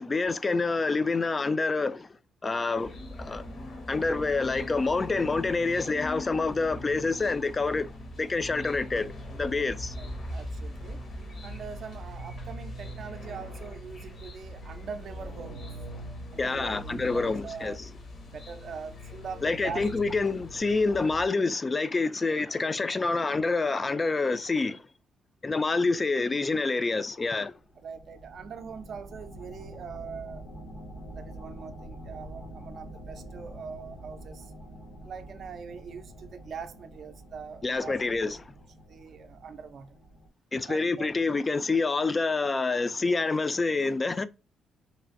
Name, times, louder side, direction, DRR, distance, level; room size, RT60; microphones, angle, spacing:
voice 1, 0.0-2.1 2.4-3.5 3.9-7.9 8.2-10.0 16.4-17.7 19.4-24.8 25.4-27.5 37.6-38.4 40.5-44.2, left 3 dB, 25° left, 0.3 m, -27 dB
sound 1, 2.7-21.3, left 1 dB, 55° left, 0.9 m, -41 dB
voice 2, 10.0-11.0 11.4-15.7 16.3-17.8 18.3-20.0 27.8-30.5 31.1-34.5 35.0-38.0 38.2-38.3 38.9-40.0 40.7-41.1, right 6 dB, 55° right, 0.4 m, -42 dB
sound 2, 27.5-40.3, right 1 dB, 85° left, 1.1 m, -46 dB
3.1 x 2.5 x 2.4 m
cardioid pair, 90°, 0 cm